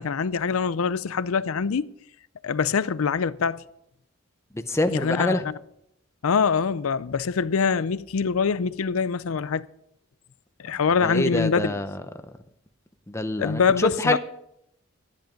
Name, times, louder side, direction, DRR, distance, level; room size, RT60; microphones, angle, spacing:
voice 1, 0.0-1.9 2.4-3.6 4.9-5.5 6.2-9.7 10.6-11.7 13.4-14.2, left 5 dB, 75° left, 0.5 m, -24 dB
voice 2, 4.7-5.5 11.0-12.0 13.1-14.2, left 1 dB, 15° left, 0.7 m, -25 dB
13.0 x 10.5 x 5.2 m
head